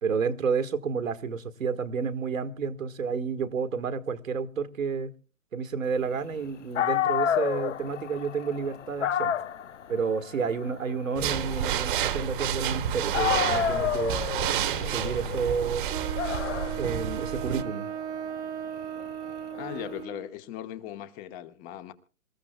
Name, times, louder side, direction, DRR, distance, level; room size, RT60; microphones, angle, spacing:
voice 1, 0.0-5.1 5.5-9.3 9.9-14.2 14.8-15.9 16.8-17.9, right 5 dB, 70° right, 1.6 m, -30 dB
Dog, 6.5-6.6 6.8-12.8 13.1-19.9, left 9 dB, 60° left, 0.7 m, -31 dB
sound 1, 11.2-17.6, right 10 dB, 40° right, 1.3 m, -30 dB
Wind instrument woodwind instrument, 15.9-20.3, right 9 dB, 10° right, 0.6 m, -36 dB
voice 2, 19.5-21.9, left 11 dB, 20° left, 1.1 m, -38 dB
27.0 x 14.5 x 2.2 m
figure-of-eight pair, 130°, 41 cm